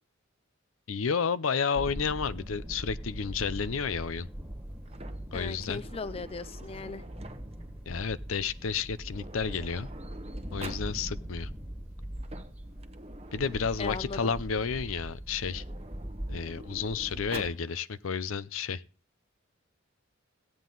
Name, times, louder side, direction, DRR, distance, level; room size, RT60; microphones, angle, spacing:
voice 1, 0.9-4.3 5.3-5.8 7.9-9.9 10.5-11.5 13.3-15.6 16.3-18.8, left 5 dB, 80° left, 0.6 m, -31 dB
sound 1, 1.7-17.5, equal, 10° right, 1.6 m, -41 dB
Sliding door, 4.9-7.7 8.7-8.8 9.0-10.9 12.0-14.6 15.3-17.6, right 2 dB, 30° right, 0.9 m, -47 dB
voice 2, 5.3-7.0 13.8-14.3, left 4 dB, 30° left, 0.5 m, -38 dB
15.5 x 9.2 x 3.9 m
head